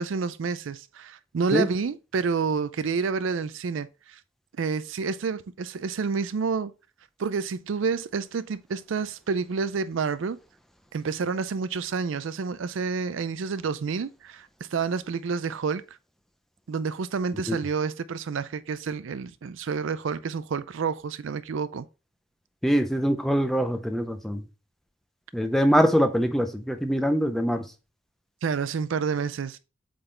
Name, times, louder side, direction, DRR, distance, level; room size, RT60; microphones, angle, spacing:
voice 1, 0.0-4.2 4.6-6.7 7.2-10.4 10.9-15.8 16.7-21.9 28.4-29.6, right 5 dB, 70° right, 0.4 m, -29 dB
voice 2, 22.6-24.4 25.3-27.7, equal, ahead, 0.6 m, -23 dB
7.9 x 3.9 x 3.3 m
head